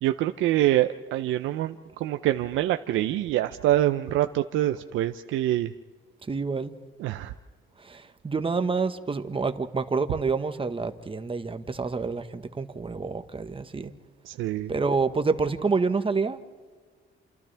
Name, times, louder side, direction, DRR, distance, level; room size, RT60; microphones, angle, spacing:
voice 1, 0.0-5.7 7.0-7.3 13.8-13.9 14.2-14.7, right 14 dB, 90° right, 8 dB, 0.7 m, -25 dB
voice 2, 6.3-6.7 7.8-13.9 14.7-16.4, right 4 dB, 25° right, 9 dB, 1.4 m, -28 dB
28.5 x 28.0 x 3.5 m, 1.4 s
cardioid pair, 90°, 20 cm